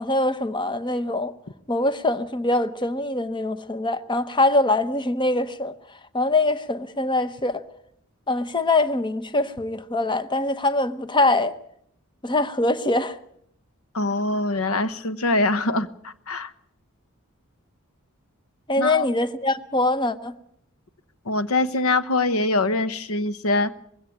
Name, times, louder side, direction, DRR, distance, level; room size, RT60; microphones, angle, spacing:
voice 1, 0.0-1.3 1.7-5.7 6.1-7.6 8.3-11.6 12.2-13.2 18.7-20.3, left 2 dB, 20° left, 0.9 m, -23 dB
voice 2, 13.9-16.5 18.8-19.1 21.3-23.7, left 2 dB, 85° left, 1.0 m, -23 dB
20.5 x 16.5 x 8.5 m
head